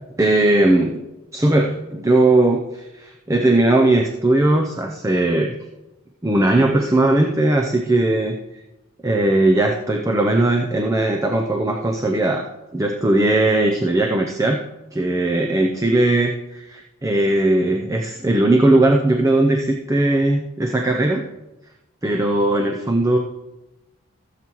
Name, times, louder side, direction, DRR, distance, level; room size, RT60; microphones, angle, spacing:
voice 1, 0.2-1.0 1.3-5.6 6.2-8.4 9.0-12.4 12.7-14.6 14.9-21.2 22.0-23.2, right 2 dB, 15° right, 2 dB, 0.5 m, -18 dB
16.0 x 7.5 x 3.1 m, 1.0 s
head